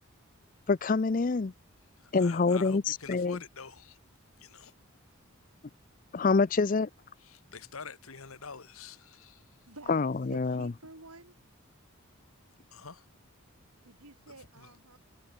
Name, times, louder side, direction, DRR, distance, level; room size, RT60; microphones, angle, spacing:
voice 1, 0.7-1.5 2.1-3.4 6.1-6.9 9.9-10.7, left 4 dB, 40° left, 0.4 m, -26 dB
voice 2, 2.0-4.0 4.4-4.7 7.2-9.6 12.7-13.1 14.6-14.7, left 5 dB, 75° left, 1.6 m, -46 dB
voice 3, 9.7-10.0 10.3-11.4 13.8-15.0, right 2 dB, 85° right, 7.6 m, -50 dB
head